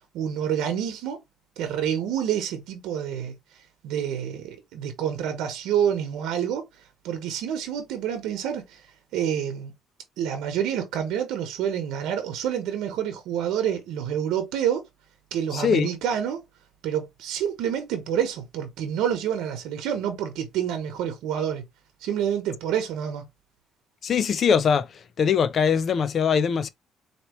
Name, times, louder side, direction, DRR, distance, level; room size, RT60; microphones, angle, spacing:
voice 1, 0.1-1.2 1.6-3.3 3.8-6.6 7.0-8.8 9.1-9.7 10.2-14.8 15.3-16.4 16.8-21.6 22.0-23.2, right 9 dB, 85° right, 1.0 m, -28 dB
voice 2, 15.5-15.9 24.0-24.9 25.2-26.7, left 6 dB, 45° left, 0.4 m, -21 dB
4.3 x 2.9 x 3.0 m
cardioid pair, 115°, 0 cm